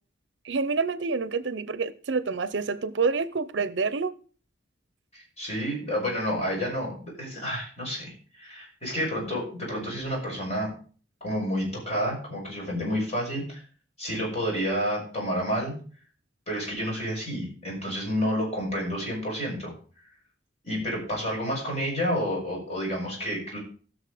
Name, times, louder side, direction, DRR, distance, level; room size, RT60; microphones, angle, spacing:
voice 1, 0.4-4.1, right 4 dB, 70° right, 0.6 m, -27 dB
voice 2, 5.1-10.7 11.2-13.6 14.0-15.7 16.5-19.7 20.6-23.6, equal, 35° left, 6.2 m, -30 dB
16.0 x 6.4 x 5.0 m
head